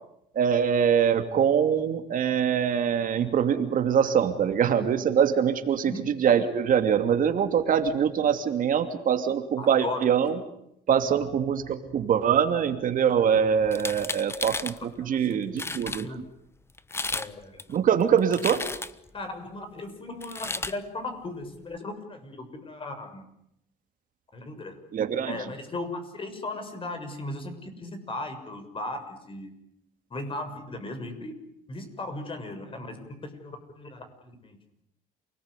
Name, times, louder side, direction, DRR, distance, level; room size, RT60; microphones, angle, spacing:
voice 1, 0.3-10.4 10.9-16.2 17.7-18.6 24.9-25.3, right 8 dB, 55° right, 7 dB, 2.8 m, -24 dB
voice 2, 9.6-10.1 15.0-16.2 17.1-17.6 19.1-23.2 24.3-24.8 25.3-29.5 30.1-31.3 31.7-34.6, left 2 dB, 30° left, 8 dB, 6.6 m, -37 dB
sound 1, 13.7-14.8 15.3-15.4 15.6-16.0 16.8-17.3 17.6-19.1 20.2-20.8, left 3 dB, 15° left, 1.2 m, -33 dB
29.0 x 20.0 x 9.9 m, 0.79 s
cardioid pair, 110°, 17 cm